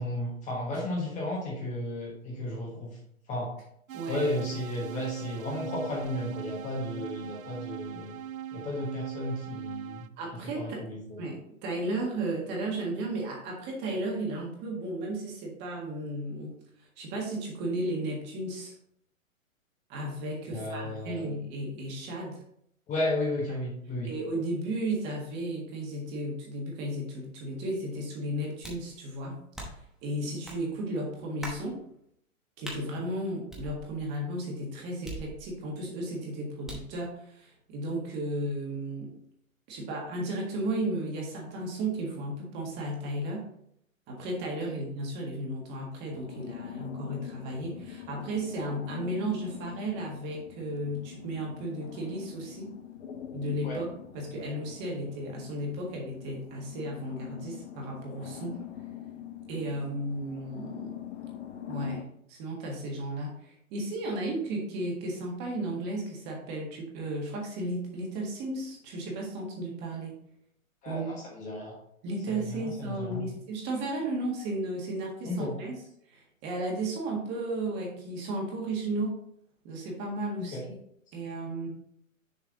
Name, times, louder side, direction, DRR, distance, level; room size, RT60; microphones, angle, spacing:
voice 1, 0.0-3.0 3.3-3.5 4.1-8.2 8.5-10.1 10.6-11.0 20.5-21.3 22.9-24.1 53.6-53.8 70.8-71.7 72.3-73.2 75.2-75.5 80.4-80.6, left 1 dB, 20° left, -3 dB, 1.3 m, -33 dB
voice 2, 3.9-4.3 10.2-10.8 11.2-16.5 17.0-18.7 19.9-22.4 24.0-29.4 30.0-31.8 32.6-39.1 39.7-43.4 44.1-52.7 53.3-53.9 54.1-58.6 59.5-61.0 61.7-62.0 62.3-70.2 70.8-71.2 72.0-75.8 76.1-79.2 79.6-80.8 81.1-81.7, right 1 dB, 25° right, -1 dB, 1.7 m, -34 dB
sound 1, 3.9-10.1, right 10 dB, 75° right, 0.5 m, -41 dB
skin pat catch hand slap, 28.6-28.9 29.5-29.9 30.4-30.6 31.4-31.7 32.6-32.8 33.5-34.1 35.0-35.7 36.6-37.0, right 1 dB, ahead, 0.9 m, -42 dB
sound 2, 46.1-62.0, left 10 dB, 55° left, 0.9 m, -44 dB
6.7 x 4.7 x 3.8 m, 0.71 s
hypercardioid pair, 140°, 41 cm